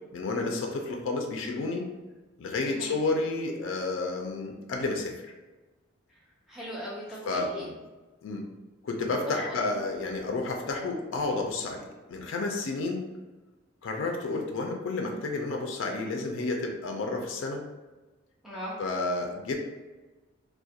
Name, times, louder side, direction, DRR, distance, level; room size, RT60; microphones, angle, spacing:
voice 1, 0.1-1.9 2.4-5.1 7.3-7.7 8.2-8.5 8.8-13.1 13.8-17.6 18.8-19.6, left 3 dB, 70° left, 2 dB, 0.4 m, -31 dB
voice 2, 6.5-7.7 9.3-9.7 18.4-18.7, equal, ahead, -7 dB, 0.4 m, -38 dB
2.3 x 2.1 x 2.6 m, 1.2 s
head